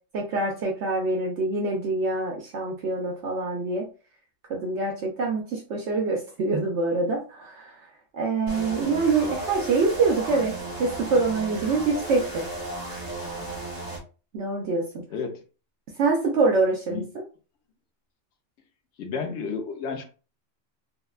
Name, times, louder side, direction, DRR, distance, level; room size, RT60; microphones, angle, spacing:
voice 1, 0.1-3.9 4.5-10.5 10.8-12.4 14.3-14.9 16.0-17.0, right 3 dB, 70° right, 0.9 m, -25 dB
sound 1, 8.5-14.0, right 2 dB, 40° right, 0.8 m, -35 dB
voice 2, 15.1-15.4 16.9-17.1 19.0-20.0, left 5 dB, 70° left, 0.9 m, -31 dB
3.4 x 2.1 x 2.3 m
omnidirectional pair, 1.2 m